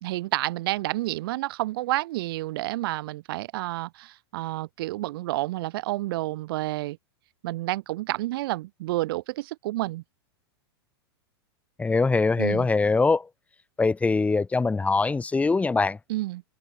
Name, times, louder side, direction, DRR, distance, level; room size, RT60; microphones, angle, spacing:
voice 1, 0.0-7.0 7.4-10.0 12.4-12.7 16.1-16.4, right 18 dB, 60° right, 1.1 m, -29 dB
voice 2, 11.8-13.3 13.8-16.0, left 3 dB, 10° left, 1.1 m, -23 dB
hypercardioid pair, 115°, 13 cm